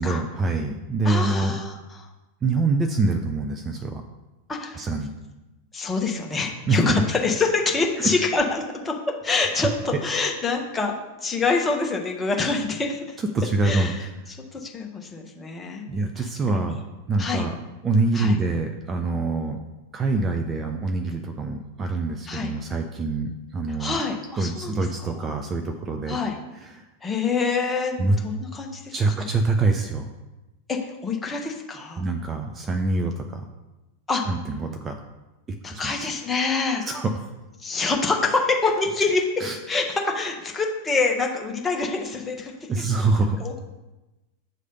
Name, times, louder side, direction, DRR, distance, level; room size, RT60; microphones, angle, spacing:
voice 1, 0.0-1.5 2.4-4.0 4.7-5.1 6.7-6.8 8.0-8.2 13.2-14.1 15.9-16.8 17.1-17.6 17.8-19.6 19.9-24.0 24.4-26.2 26.5-26.9 28.0-28.2 28.9-30.1 32.0-33.5 34.3-35.0 35.6-36.1 36.8-37.2 39.4-39.6 42.7-43.4, right 3 dB, 20° right, 4 dB, 0.5 m, -25 dB
voice 2, 1.0-1.8 4.5-4.9 5.7-8.9 9.2-10.9 11.2-13.0 13.6-14.0 14.5-15.9 16.2-16.3 16.5-16.7 17.2-17.4 18.1-18.3 22.3-22.5 23.8-24.7 26.1-26.3 27.0-28.9 30.7-32.0 34.1-34.2 35.6-36.8 37.6-39.2 39.7-42.5 43.4-43.6, left 4 dB, 15° left, 1 dB, 1.0 m, -25 dB
7.7 x 3.3 x 5.3 m, 1.1 s
figure-of-eight pair, 90°, 0 cm